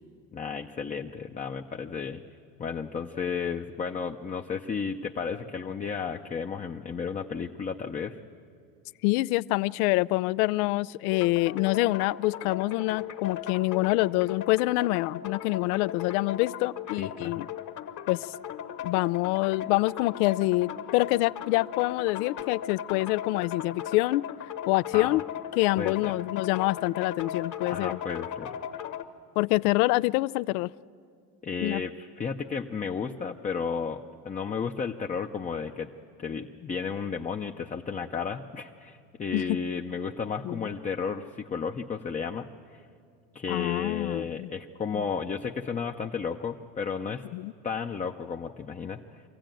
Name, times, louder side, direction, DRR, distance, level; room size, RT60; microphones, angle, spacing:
voice 1, 0.3-2.2 2.6-8.2 17.0-17.4 24.9-25.2 25.8-26.1 27.6-28.5 31.4-35.9 36.2-42.8 43.3-47.2 47.6-49.2, left 6 dB, 20° left, 3 dB, 0.6 m, -33 dB
voice 2, 9.0-17.5 18.1-18.3 18.8-24.2 24.7-25.2 25.6-28.0 29.4-30.7 31.6-31.8 39.3-39.6 40.4-40.7 43.5-44.5 44.9-45.0 47.3-47.5, left 20 dB, 85° left, 19 dB, 0.5 m, -26 dB
sound 1, 11.1-29.0, left 9 dB, 45° left, 1.2 m, -37 dB
24.5 x 15.5 x 9.1 m, 2.3 s
supercardioid pair, 115°, 43 cm